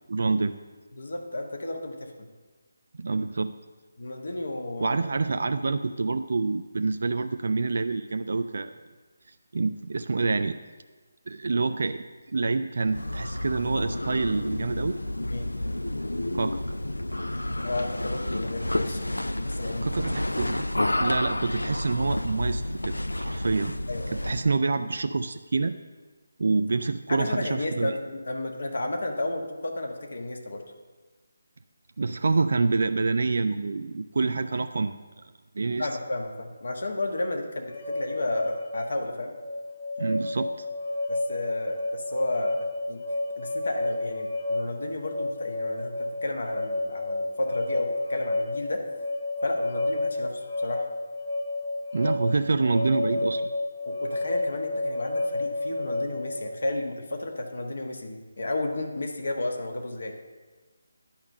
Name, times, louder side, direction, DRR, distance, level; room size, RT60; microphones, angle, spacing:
voice 1, 0.1-0.5 3.0-3.5 4.8-8.7 9.5-10.6 11.3-12.0 12.3-15.0 16.3-16.6 19.8-20.7 21.0-23.7 24.1-25.8 26.4-27.9 32.0-35.0 35.5-35.9 40.0-40.7 51.9-53.4, right 3 dB, 50° right, 9 dB, 0.3 m, -27 dB
voice 2, 0.9-2.3 4.0-5.0 15.3-15.5 17.6-19.0 19.4-19.9 20.4-20.5 23.9-24.2 27.1-30.6 35.8-39.3 41.1-43.0 43.4-45.9 46.2-48.9 49.4-50.9 53.8-60.1, left 2 dB, 55° left, 3 dB, 1.3 m, -32 dB
sound 1, 12.8-24.6, left 1 dB, 75° left, 0.4 m, -30 dB
sound 2, 37.7-56.4, left 2 dB, 35° left, 2.5 m, -31 dB
10.5 x 5.4 x 6.4 m, 1.3 s
figure-of-eight pair, 150°, 0 cm